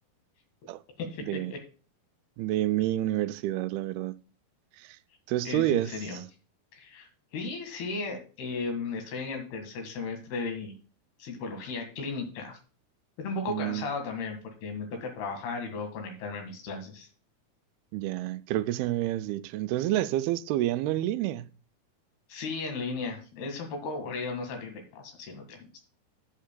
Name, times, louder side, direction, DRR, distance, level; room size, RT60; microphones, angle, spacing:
voice 1, 1.0-1.6 5.5-6.2 6.7-10.8 11.2-12.6 13.2-17.1 22.3-25.7, left 4 dB, 75° left, 3.7 m, -35 dB
voice 2, 2.4-4.2 4.8-5.0 5.3-6.2 13.5-13.8 17.9-21.5, right 14 dB, 85° right, 2.4 m, -29 dB
13.0 x 8.7 x 2.2 m
omnidirectional pair, 4.5 m